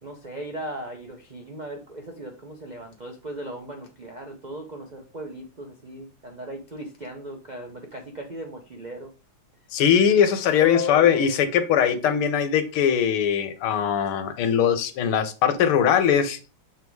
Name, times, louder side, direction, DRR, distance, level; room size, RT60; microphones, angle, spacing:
voice 1, 0.0-9.1, right 1 dB, 65° right, 2 dB, 0.4 m, -38 dB
voice 2, 9.7-16.4, left 8 dB, 90° left, 10 dB, 1.8 m, -21 dB
6.7 x 3.5 x 4.6 m, 0.33 s
omnidirectional pair, 2.3 m